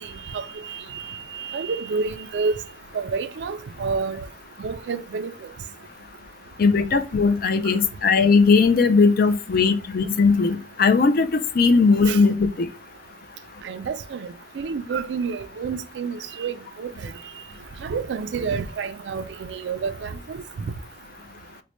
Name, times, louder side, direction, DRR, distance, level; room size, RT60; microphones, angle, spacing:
voice 1, 0.0-2.6 2.9-4.3 4.6-5.3 12.1-12.2 13.6-17.1 17.8-20.4, right 5 dB, 70° right, 0.4 m, -29 dB
voice 2, 6.6-12.7, left 4 dB, 55° left, 0.4 m, -18 dB
4.0 x 2.2 x 3.0 m
head